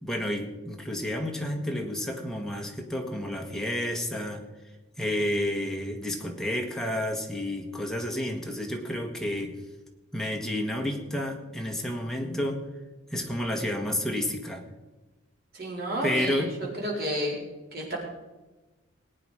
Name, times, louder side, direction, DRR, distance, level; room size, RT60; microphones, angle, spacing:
voice 1, 0.0-4.4 5.0-9.6 10.1-12.6 13.1-14.6 16.0-16.5, left 1 dB, ahead, 2 dB, 1.5 m, -30 dB
voice 2, 15.5-17.3 17.7-18.0, equal, 50° right, -3 dB, 4.2 m, -31 dB
19.5 x 8.9 x 5.0 m, 1.1 s
head